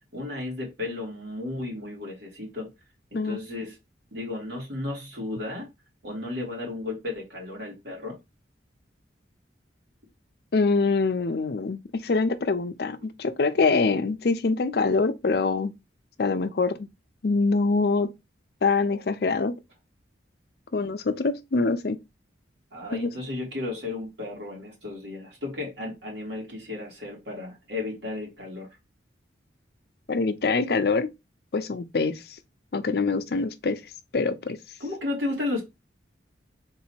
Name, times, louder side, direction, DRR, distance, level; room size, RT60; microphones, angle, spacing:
voice 1, 0.1-2.7 3.1-3.8 4.1-5.7 6.0-8.2 22.7-28.7 34.8-35.6, left 2 dB, 75° right, 2.2 m, -34 dB
voice 2, 10.5-15.7 16.2-16.8 17.2-18.1 18.6-19.5 20.7-22.0 22.9-23.1 30.1-31.1 31.5-32.2 32.7-33.8 34.1-34.6, left 4 dB, 55° left, 0.5 m, -24 dB
3.8 x 2.8 x 4.3 m
head